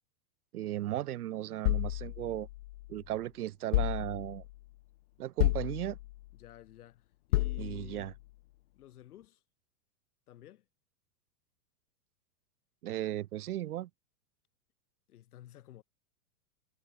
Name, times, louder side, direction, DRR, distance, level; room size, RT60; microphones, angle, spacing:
voice 1, 0.5-2.5 2.9-4.4 5.2-6.0 7.6-8.1 12.8-13.9, right 13 dB, 70° right, 2.0 m, -36 dB
sound 1, 1.6-3.0 3.7-4.6 5.4-6.3 7.3-8.1, left 18 dB, 40° left, 0.8 m, -32 dB
voice 2, 6.3-8.2 8.8-9.4 10.3-10.7 15.1-15.8, left 12 dB, 70° left, 5.6 m, -53 dB
supercardioid pair, 170°, 47 cm